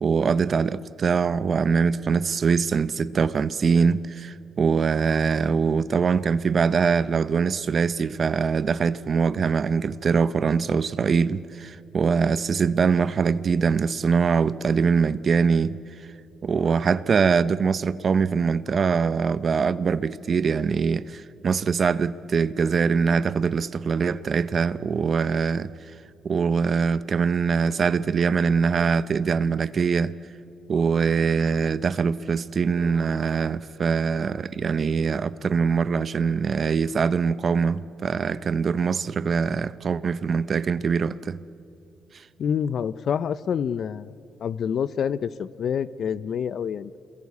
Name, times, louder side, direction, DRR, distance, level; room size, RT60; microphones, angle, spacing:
voice 1, 0.0-15.8 16.4-25.7 26.2-30.1 30.7-41.4 42.1-42.2, right 5 dB, 45° right, 0.7 m, -23 dB
voice 2, 42.4-44.1 44.4-47.0, left 7 dB, 60° left, 0.6 m, -27 dB
27.5 x 22.5 x 8.5 m
cardioid pair, 90°, 0 cm